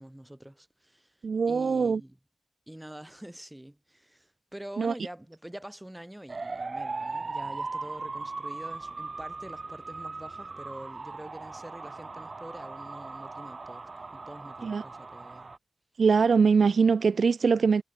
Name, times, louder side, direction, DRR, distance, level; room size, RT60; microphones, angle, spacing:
voice 1, 0.0-2.2 2.7-15.5, right 1 dB, 10° right, 3.2 m, -45 dB
voice 2, 1.2-2.0 4.8-4.9 14.6-14.8 16.0-17.8, right 5 dB, 70° right, 0.4 m, -22 dB
sound 1, 6.3-15.6, right 3 dB, 45° right, 2.8 m, -38 dB
wide cardioid pair, 95°, 0 cm